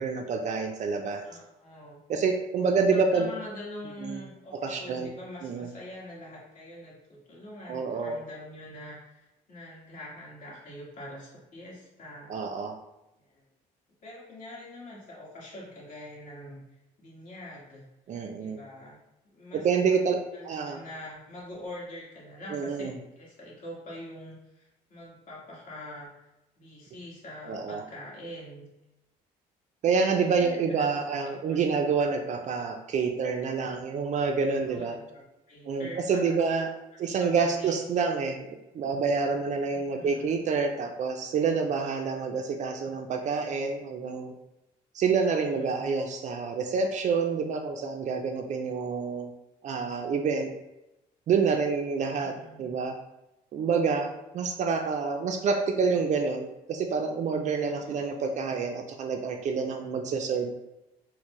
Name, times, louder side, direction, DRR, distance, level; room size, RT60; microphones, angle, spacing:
voice 1, 0.0-1.2 2.1-3.3 4.0-4.2 4.6-5.1 5.4-5.7 7.7-8.2 12.3-12.8 18.1-18.6 19.5-20.2 20.4-20.8 22.5-22.9 27.5-27.8 29.8-35.0 35.7-36.7 37.0-38.5 38.7-44.3 44.9-49.3 49.6-50.5 51.3-52.3 52.6-53.0 53.5-60.6, right 5 dB, 45° right, 4 dB, 0.4 m, -27 dB
voice 2, 1.2-2.0 2.9-12.3 13.3-13.4 14.0-16.6 17.0-17.8 18.4-19.0 19.3-19.7 20.3-22.9 23.2-26.2 26.6-28.7 30.0-31.8 34.5-36.4 37.1-37.7 39.7-40.3 45.2-45.9 52.2-52.7 57.6-58.2, left 1 dB, 50° left, -5 dB, 1.4 m, -44 dB
4.2 x 2.1 x 3.0 m, 0.93 s
cardioid pair, 110°, 17 cm